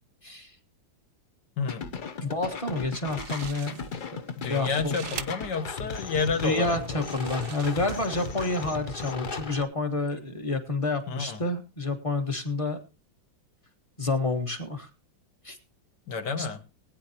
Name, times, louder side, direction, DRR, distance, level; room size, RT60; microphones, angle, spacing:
voice 1, 0.2-0.5 2.2-3.8 4.1-4.2 4.5-5.0 6.4-12.8 14.0-14.9 15.4-15.6 16.4-16.5, left 3 dB, 20° left, 6 dB, 1.2 m, -29 dB
voice 2, 1.6-1.9 4.4-7.0 11.1-11.4 16.1-16.6, left 5 dB, 65° left, 9 dB, 1.7 m, -30 dB
sound 1, 1.7-9.6, left 5 dB, 80° left, 0.4 m, -36 dB
sound 2, 2.8-2.9 3.1-4.1 4.4-5.3 6.0-6.1 6.8-8.3, right 9 dB, 70° right, 0.6 m, -43 dB
20.0 x 9.4 x 2.8 m, 0.30 s
omnidirectional pair, 2.1 m